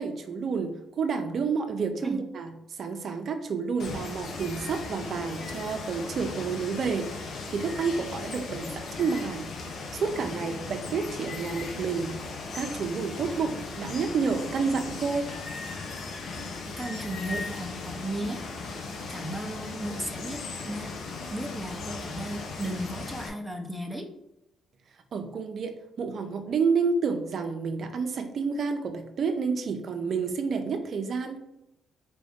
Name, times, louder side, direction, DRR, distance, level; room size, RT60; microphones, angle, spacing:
voice 1, 0.0-7.1 7.5-9.5 9.9-12.1 12.5-15.3 25.1-31.4, right 5 dB, 55° right, 5 dB, 0.5 m, -29 dB
Water, 3.8-23.3, left 3 dB, 70° left, 0.7 m, -37 dB
voice 2, 16.7-18.4 19.1-20.9 21.3-24.1, right 1 dB, ahead, 1 dB, 0.7 m, -35 dB
4.6 x 2.5 x 3.5 m, 0.86 s
cardioid pair, 90°, 0 cm